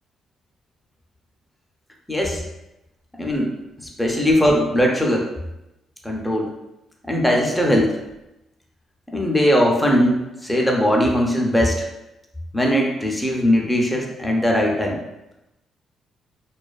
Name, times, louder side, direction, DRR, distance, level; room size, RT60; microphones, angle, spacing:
voice 1, 2.1-2.4 3.2-3.5 3.8-5.3 6.0-6.5 7.1-8.0 9.1-11.8 12.5-15.0, equal, 5° left, -1 dB, 0.4 m, -19 dB
2.4 x 2.3 x 2.3 m, 0.94 s
cardioid pair, 90°, 0 cm